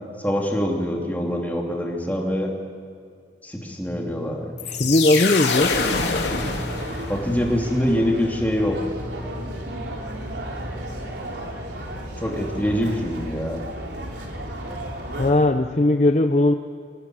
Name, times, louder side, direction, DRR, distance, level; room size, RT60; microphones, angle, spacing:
voice 1, 0.2-2.5 3.4-4.5 7.1-8.8 12.2-13.6, equal, 10° left, 0 dB, 2.9 m, -24 dB
sound 1, 3.9-11.2, equal, 35° right, 4.3 m, -41 dB
sound 2, 4.6-7.4, left 4 dB, 80° left, 2.7 m, -25 dB
voice 2, 4.7-5.8 15.2-16.5, left 2 dB, 40° left, 7 dB, 0.7 m, -18 dB
sound 3, 6.2-15.3, right 1 dB, 80° right, 3.5 m, -33 dB
24.5 x 16.5 x 9.0 m, 2.3 s
head